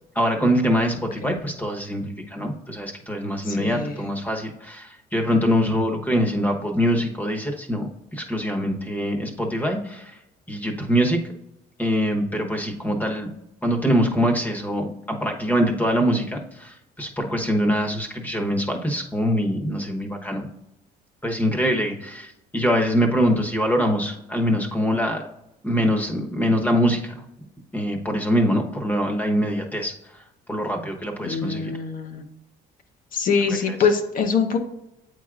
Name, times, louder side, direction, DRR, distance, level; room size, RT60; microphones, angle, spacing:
voice 1, 0.1-10.2 10.5-11.2 11.8-13.3 13.6-20.4 21.2-25.3 25.6-27.1 27.7-30.2 30.5-31.7 33.7-33.8, equal, 10° left, 3 dB, 1.0 m, -24 dB
voice 2, 3.5-3.9 31.2-32.2 33.1-34.6, left 5 dB, 55° left, 5 dB, 0.8 m, -23 dB
8.2 x 4.8 x 2.4 m, 0.87 s
cardioid pair, 110°, 17 cm